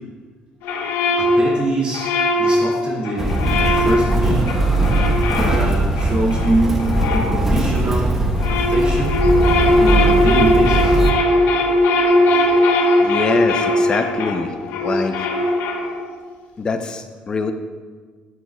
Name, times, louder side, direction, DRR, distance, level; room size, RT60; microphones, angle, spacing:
sound 1, 0.6-7.9 8.2-16.2, left 1 dB, 80° left, 1.0 m, -19 dB
voice 1, 1.2-2.1 2.4-4.5 5.3-8.1 8.5-9.2 9.8-11.0, right 2 dB, 35° right, -5 dB, 2.4 m, -24 dB
Motor vehicle (road), 3.2-11.1, right 1 dB, 10° right, 1.1 m, -19 dB
voice 2, 13.0-14.5 14.8-15.2 16.6-17.5, left 4 dB, 25° left, 7 dB, 0.7 m, -24 dB
12.5 x 12.5 x 2.3 m, 1.5 s
cardioid pair, 150°, 3 cm